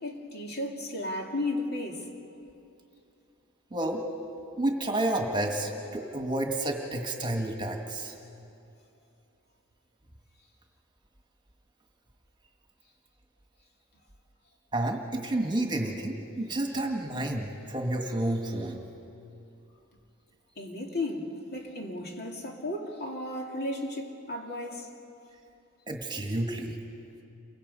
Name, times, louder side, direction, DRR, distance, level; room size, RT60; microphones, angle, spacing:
voice 1, 0.0-2.1 20.6-24.9, left 1 dB, 50° left, 2.5 m, -34 dB
voice 2, 3.7-4.0 4.6-8.1 14.7-18.8 25.9-26.8, right 1 dB, 20° right, 1.9 m, -30 dB
28.5 x 23.5 x 5.5 m
head